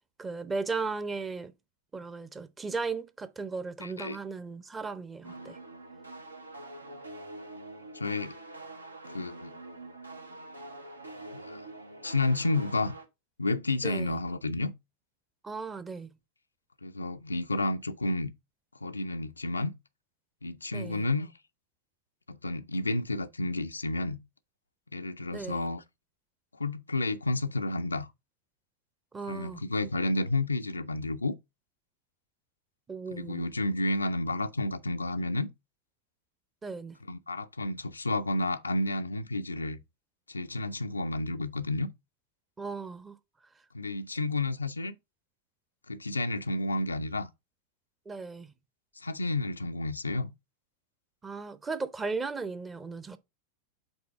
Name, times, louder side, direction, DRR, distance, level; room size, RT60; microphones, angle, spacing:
voice 1, 0.2-1.5 1.9-5.6 13.8-14.2 15.4-16.1 20.7-21.1 25.3-25.7 29.1-29.6 32.9-33.5 36.6-37.0 42.6-43.2 48.1-48.5 51.2-53.2, right 4 dB, 15° right, 0.6 m, -36 dB
voice 2, 3.8-4.2 7.9-8.3 9.1-9.5 11.3-11.6 12.0-13.0 13.4-14.7 16.8-18.3 18.8-19.7 20.4-21.3 22.3-24.2 24.9-25.8 26.5-28.1 29.3-31.3 33.1-35.5 37.1-39.8 40.3-41.9 43.7-45.0 45.9-47.3 49.0-50.3, left 2 dB, 80° left, 0.4 m, -31 dB
sound 1, 5.2-13.1, right 2 dB, 80° right, 0.8 m, -45 dB
5.3 x 3.9 x 4.5 m
figure-of-eight pair, 90°, 0 cm